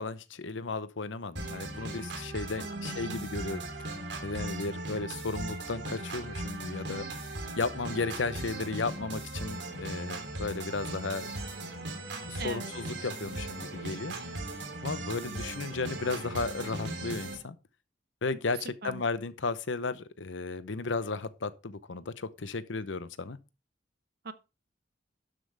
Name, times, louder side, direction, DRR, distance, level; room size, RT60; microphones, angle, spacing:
voice 1, 0.0-3.6 4.2-7.0 7.6-11.3 12.3-14.1 14.8-17.6 18.2-23.4, left 3 dB, 85° left, 0.8 m, -34 dB
sound 1, 1.4-17.4, right 2 dB, 70° right, 3.2 m, -38 dB
voice 2, 2.6-3.3 12.4-12.7 18.8-19.0 24.2-24.3, right 3 dB, 55° right, 0.9 m, -40 dB
12.0 x 7.7 x 3.4 m
head